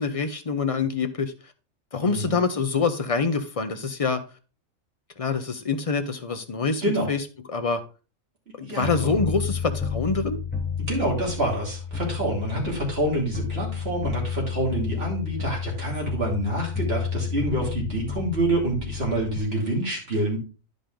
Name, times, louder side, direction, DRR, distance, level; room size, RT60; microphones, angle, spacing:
voice 1, 0.0-1.3 1.9-4.2 5.2-7.2 7.5-7.8 8.6-10.4, left 4 dB, 40° left, 8 dB, 0.5 m, -26 dB
voice 2, 2.0-2.4 6.8-7.1 8.6-9.1 10.9-20.4, right 1 dB, 45° right, -2 dB, 3.0 m, -27 dB
sound 1, 8.8-19.4, left 6 dB, 10° left, 1.2 m, -31 dB
10.0 x 5.3 x 3.8 m, 0.34 s
omnidirectional pair, 1.4 m